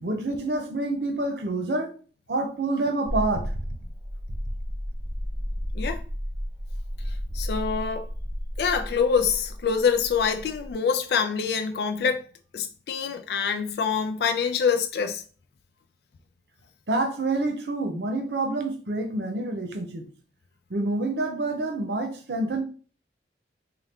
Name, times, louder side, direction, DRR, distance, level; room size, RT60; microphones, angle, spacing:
voice 1, 0.0-1.9 2.3-3.5 16.9-20.1 20.7-22.6, right 2 dB, 65° right, 0.7 m, -27 dB
sound 1, 3.0-10.7, equal, 25° right, 0.5 m, -33 dB
voice 2, 7.3-8.1 8.6-12.2 12.5-15.2, left 6 dB, 60° left, 0.3 m, -25 dB
4.3 x 2.2 x 3.5 m
head